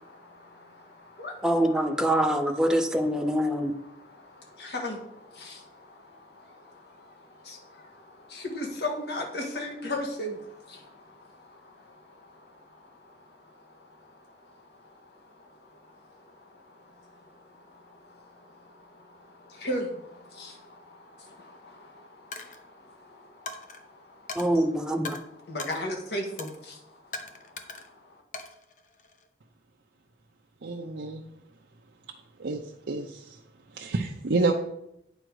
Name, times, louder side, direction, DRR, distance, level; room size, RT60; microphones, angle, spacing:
voice 1, 0.0-1.4 3.9-24.4 25.5-28.1, left 1 dB, 70° left, 1.5 m, -39 dB
voice 2, 1.4-3.8 24.3-25.2, right 1 dB, 5° right, 0.5 m, -24 dB
Coin (dropping), 22.3-22.6 23.5-23.8 24.3-24.5 25.1-25.2 25.6-25.8 26.4-26.6 27.1-27.9 28.3-29.3, left 4 dB, 45° left, 0.8 m, -39 dB
voice 3, 30.6-31.3 32.4-33.4 33.7-34.5, right 3 dB, 85° right, 0.6 m, -29 dB
9.1 x 5.0 x 4.7 m
head